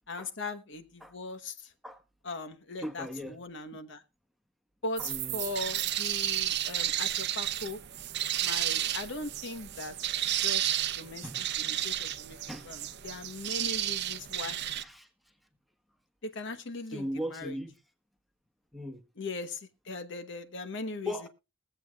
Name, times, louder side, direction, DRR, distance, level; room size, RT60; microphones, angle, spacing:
voice 1, 0.1-1.7 2.2-4.0 4.8-7.8 8.4-10.7 11.0-11.2 11.6-12.4 12.6-14.6 16.2-17.6 19.2-21.3, left 3 dB, 65° left, 1.1 m, -39 dB
voice 2, 2.8-3.4 5.0-5.5 11.2-11.5 12.5-12.7 14.7-15.1 16.9-17.7 18.7-19.0 21.0-21.3, equal, ahead, 1.3 m, -38 dB
sound 1, 5.0-14.8, right 12 dB, 60° right, 0.6 m, -32 dB
22.0 x 7.8 x 2.4 m
head